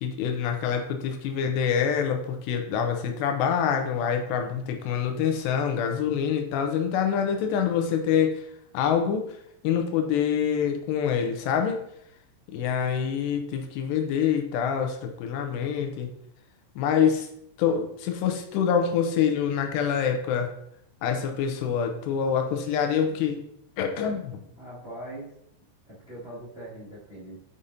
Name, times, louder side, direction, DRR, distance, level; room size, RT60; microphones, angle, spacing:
voice 1, 0.0-8.5 8.7-9.2 9.6-11.8 12.5-16.1 16.8-17.3 17.6-20.5 21.0-23.4 23.8-24.4, left 7 dB, 80° left, 4 dB, 2.7 m, -26 dB
voice 2, 24.6-25.3 25.9-27.4, right 1 dB, 35° right, -11 dB, 1.0 m, -41 dB
6.9 x 5.0 x 2.7 m, 0.74 s
omnidirectional pair, 5.0 m